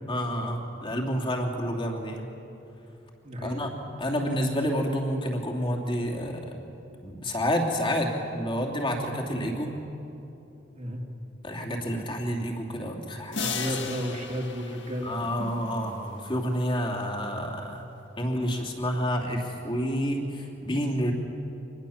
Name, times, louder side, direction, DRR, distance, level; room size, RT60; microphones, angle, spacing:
voice 1, 0.1-2.2 3.4-3.7 4.0-6.4 7.0-9.7 11.4-13.4 15.0-17.8 18.2-21.1, equal, 25° left, 0 dB, 2.9 m, -29 dB
voice 2, 3.2-3.6 10.7-11.0 13.4-15.5, equal, 40° right, -1 dB, 2.7 m, -33 dB
sound 1, 13.3-15.8, left 5 dB, 65° left, 1.8 m, -35 dB
25.0 x 20.5 x 7.2 m, 3.0 s
head